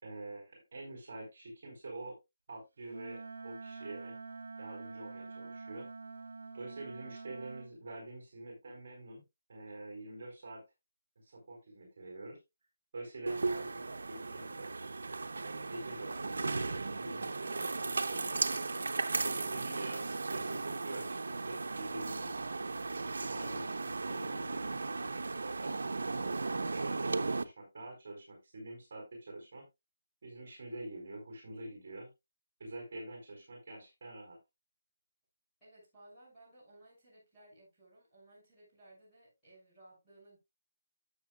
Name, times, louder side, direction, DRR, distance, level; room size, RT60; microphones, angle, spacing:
voice 1, 0.0-2.2 2.5-4.1 4.6-5.9 6.5-9.2 9.5-10.6 11.2-12.4 12.9-14.7 15.4-18.6 19.2-22.4 23.0-24.7 25.4-26.5 26.8-29.6 30.2-32.1 32.6-34.4, right 2 dB, 35° right, 4.1 m, -46 dB
Wind instrument woodwind instrument, 2.9-7.7, right 3 dB, 65° right, 2.0 m, -46 dB
sound 1, 13.3-27.4, right 3 dB, 80° right, 0.8 m, -36 dB
voice 2, 35.6-40.4, right 1 dB, 5° left, 6.4 m, -59 dB
13.0 x 7.5 x 2.3 m
hypercardioid pair, 180°, 0 cm